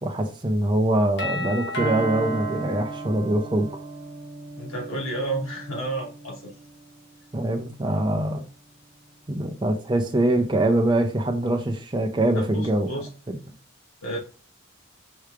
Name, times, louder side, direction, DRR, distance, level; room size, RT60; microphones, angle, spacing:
voice 1, 0.0-3.7 7.3-8.4 9.3-12.9 13.3-13.4, right 1 dB, 20° right, 0.5 m, -23 dB
Doorbell, 1.2-4.0, right 2 dB, 55° left, 1.4 m, -32 dB
Electric guitar, 1.8-9.6, right 1 dB, 40° right, 1.3 m, -39 dB
voice 2, 4.6-6.5 12.3-13.1 14.0-14.2, right 2 dB, 90° left, 2.2 m, -31 dB
4.8 x 3.2 x 3.3 m
head